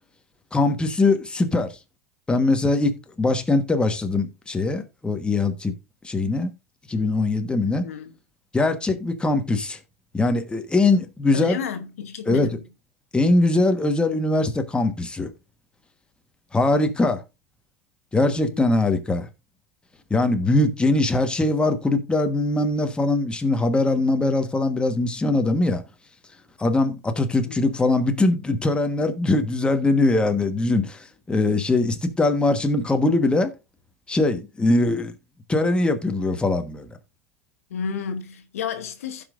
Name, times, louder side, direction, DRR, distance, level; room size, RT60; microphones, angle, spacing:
voice 1, 0.5-1.8 2.3-5.7 6.0-6.5 6.9-7.9 8.5-9.8 10.1-11.6 12.2-12.5 13.1-15.3 16.5-17.2 18.1-19.3 20.1-25.8 26.6-33.5 34.1-35.1 35.5-36.9, left 2 dB, 15° left, 1.3 m, -21 dB
voice 2, 7.6-8.1 11.3-12.6 18.2-18.8 27.4-27.8 37.7-39.2, left 7 dB, 80° left, 1.1 m, -32 dB
15.5 x 5.3 x 2.5 m
hypercardioid pair, 90°, 8 cm